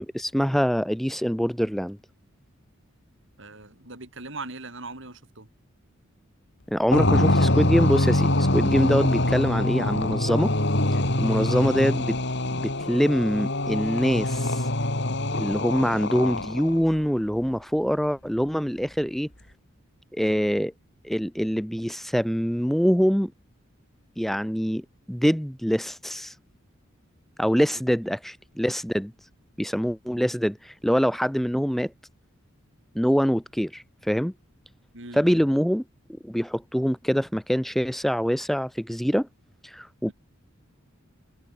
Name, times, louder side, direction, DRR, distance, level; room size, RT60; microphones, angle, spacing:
voice 1, 0.0-2.0 6.7-10.5 11.2-12.2 12.5-14.6 15.4-19.3 20.1-20.7 21.0-23.3 24.2-26.3 27.4-29.1 29.6-31.9 33.0-34.3 35.1-35.8 36.1-39.3 39.6-40.1, equal, ahead, 1.8 m, -24 dB
voice 2, 3.4-5.5 34.9-35.4 40.1-40.2, right 3 dB, 65° right, 6.6 m, -40 dB
sound 1, 6.9-16.8, left 1 dB, 60° left, 4.3 m, -24 dB
head